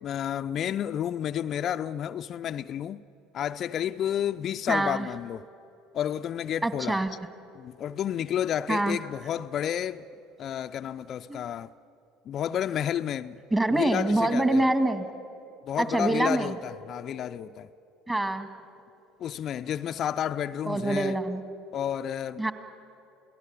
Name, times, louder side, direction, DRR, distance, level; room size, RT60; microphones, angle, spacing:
voice 1, 0.0-3.0 3.3-5.4 5.9-7.0 7.6-10.0 10.4-11.7 12.3-13.4 13.7-14.7 15.7-17.7 19.2-21.2 21.7-22.4, left 10 dB, 50° left, 0.5 m, -31 dB
voice 2, 4.7-5.1 6.6-7.1 8.7-9.0 11.3-11.4 13.5-15.1 15.8-16.6 18.1-18.5 20.7-21.4 22.4-22.5, right 2 dB, 15° right, 2.0 m, -25 dB
28.5 x 18.0 x 8.3 m
hypercardioid pair, 70°, 0 cm